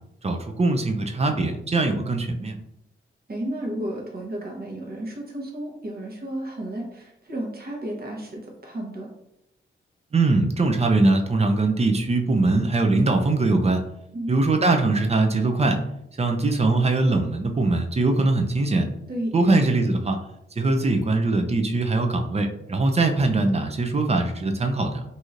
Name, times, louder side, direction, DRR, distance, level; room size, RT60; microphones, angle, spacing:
voice 1, 0.2-2.6 10.1-13.8 14.3-15.8 16.2-18.9 19.3-20.2 20.6-25.0, right 2 dB, 30° right, 5 dB, 0.5 m, -21 dB
voice 2, 3.3-9.1 14.1-14.4 19.1-19.3, right 1 dB, 45° right, 0 dB, 1.0 m, -32 dB
3.0 x 2.7 x 2.4 m, 0.82 s
cardioid pair, 65°, 21 cm